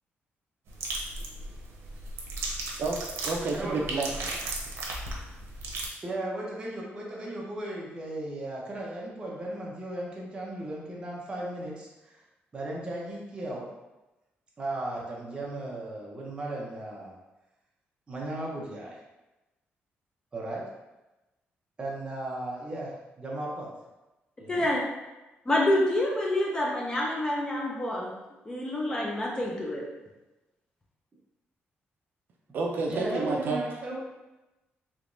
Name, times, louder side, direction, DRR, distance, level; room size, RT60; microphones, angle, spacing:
sound 1, 0.7-5.9, right 2 dB, 90° right, 0.7 m, -35 dB
voice 1, 3.2-4.4 32.5-33.6, right 3 dB, 55° right, 0 dB, 0.4 m, -30 dB
voice 2, 6.0-12.2 12.5-13.7 14.6-17.1 18.1-19.0 20.3-20.6 21.8-23.7 24.4-24.7 32.9-34.1, right 1 dB, 20° right, -4 dB, 0.7 m, -36 dB
voice 3, 24.5-24.8 25.5-28.1 28.5-29.8, left 1 dB, 20° left, -2 dB, 0.5 m, -27 dB
3.3 x 3.0 x 2.6 m, 1.0 s
cardioid pair, 165°, 4 cm